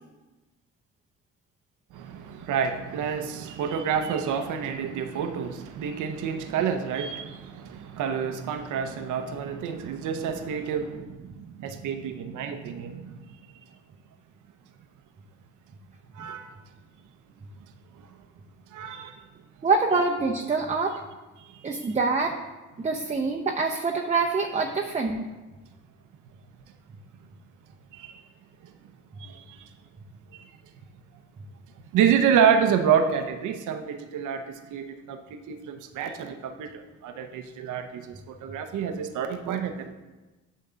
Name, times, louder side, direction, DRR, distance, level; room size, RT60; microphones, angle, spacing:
voice 1, 1.9-13.3 16.1-16.5 18.0-18.1 18.7-19.2 21.4-21.9 27.9-28.2 28.6-28.7 29.2-29.7 30.3-30.5 31.9-35.2 35.5-39.9, right 7 dB, 80° right, 0.8 m, -28 dB
voice 2, 19.6-20.9 21.6-22.3 22.8-25.2, right 4 dB, 25° right, 0.7 m, -25 dB
8.3 x 3.8 x 6.7 m
cardioid pair, 90°, 30 cm